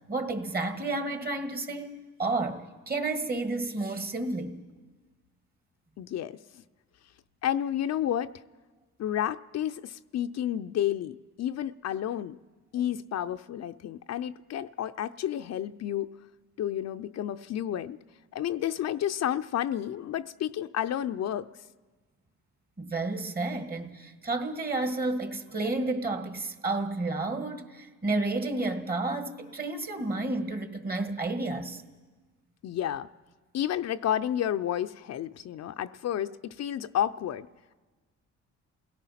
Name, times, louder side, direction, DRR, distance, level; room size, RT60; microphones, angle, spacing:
voice 1, 0.1-4.6 22.8-31.8, right 2 dB, 30° right, 1.8 m, -31 dB
voice 2, 6.0-6.6 7.4-8.3 9.0-12.4 12.7-16.1 16.6-18.0 18.3-21.5 32.6-33.1 33.5-37.5, left 10 dB, 60° left, 0.5 m, -31 dB
28.0 x 17.5 x 5.8 m
cardioid pair, 90°, 30 cm